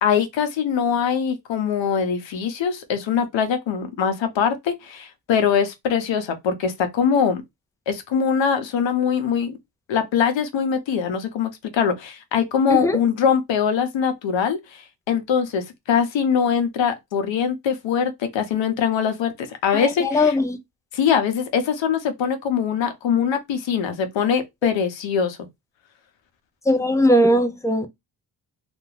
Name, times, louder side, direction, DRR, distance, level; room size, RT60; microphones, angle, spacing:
voice 1, 0.0-7.4 7.9-9.6 9.9-20.4 20.9-25.4, left 7 dB, 75° left, 0.7 m, -22 dB
voice 2, 19.7-20.6 26.7-27.9, left 1 dB, 10° left, 0.3 m, -19 dB
2.4 x 2.2 x 3.1 m
cardioid pair, 95°, 45 cm